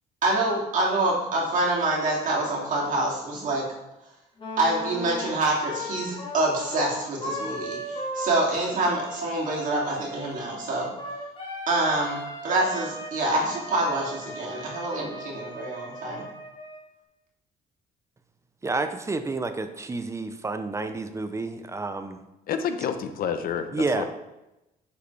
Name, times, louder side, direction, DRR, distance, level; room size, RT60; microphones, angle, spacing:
voice 1, 0.2-3.7 4.6-10.9 11.7-16.2, right 2 dB, 50° right, -3 dB, 2.7 m, -26 dB
Wind instrument woodwind instrument, 4.4-16.9, equal, 30° left, 2.4 m, -37 dB
voice 2, 18.6-22.2 23.7-24.1, right 3 dB, 15° right, 9 dB, 0.6 m, -29 dB
voice 3, 22.5-24.1, left 7 dB, 60° left, 9 dB, 0.8 m, -29 dB
7.4 x 6.8 x 3.3 m, 0.94 s
cardioid pair, 110°, 17 cm